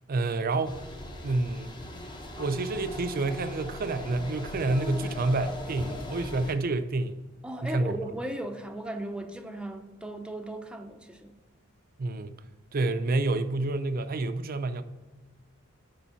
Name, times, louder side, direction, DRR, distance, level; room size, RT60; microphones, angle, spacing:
voice 1, 0.1-0.8 1.2-1.8 2.4-7.2 7.6-8.1 12.0-12.4 12.7-14.8, right 2 dB, 45° right, 0.5 m, -28 dB
sound 1, 0.6-6.5, left 1 dB, 25° left, 0.9 m, -39 dB
voice 2, 7.4-11.4, right 1 dB, 5° right, 0.6 m, -37 dB
7.1 x 5.4 x 5.6 m
head